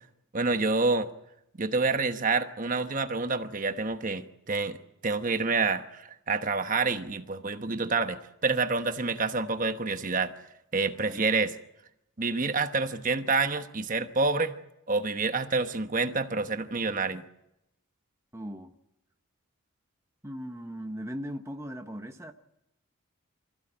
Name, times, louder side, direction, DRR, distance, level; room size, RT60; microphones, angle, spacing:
voice 1, 0.3-1.1 1.6-4.8 5.0-10.3 10.7-11.5 12.2-14.5 14.9-17.2, right 3 dB, 40° right, 8 dB, 1.0 m, -28 dB
voice 2, 11.0-11.3 18.3-18.7 20.2-22.3, equal, 15° right, 4 dB, 0.9 m, -38 dB
25.0 x 15.0 x 8.7 m, 0.88 s
head